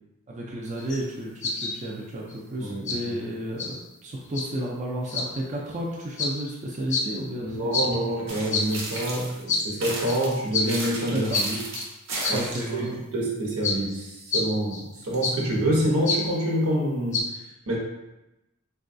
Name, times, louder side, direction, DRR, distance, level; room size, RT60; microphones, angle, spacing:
voice 1, 0.3-3.8 4.0-7.8 11.1-11.4 12.3-13.0, right 1 dB, 35° right, -3 dB, 0.4 m, -32 dB
sound 1, 0.8-1.0 1.4-1.8 2.3-2.4 2.9-3.0 3.6-3.8 4.3-4.5 5.1-5.3 6.2-6.3 6.9-7.1 7.7-7.9 8.5-8.7 8.9-9.1 9.5-9.7 10.1-10.3 10.5-10.7 11.2-11.5 11.7-11.9 12.2-12.4 12.8-12.9 13.6-13.8 14.3-14.5 14.7-14.8 15.1-15.4 16.1-16.2 17.1-17.2, left 3 dB, 35° left, 0.3 m, -27 dB
voice 2, 2.6-3.2 7.4-11.6 12.3-17.2 17.7-17.8, right 1 dB, 80° right, -3 dB, 0.9 m, -27 dB
sound 2, 8.3-9.4 9.8-12.8, right 2 dB, 60° right, 0.7 m, -34 dB
4.0 x 2.2 x 2.6 m, 0.95 s
head